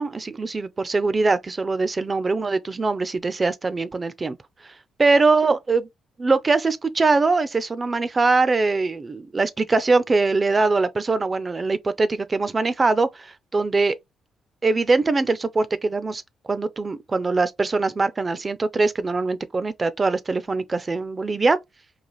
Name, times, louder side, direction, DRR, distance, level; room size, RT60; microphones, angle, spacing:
voice 1, 0.0-4.4 5.0-5.9 6.2-14.0 14.6-16.2 16.5-21.6, right 3 dB, 35° right, 0.5 m, -22 dB
4.0 x 2.4 x 3.0 m
supercardioid pair, 55°, 0 cm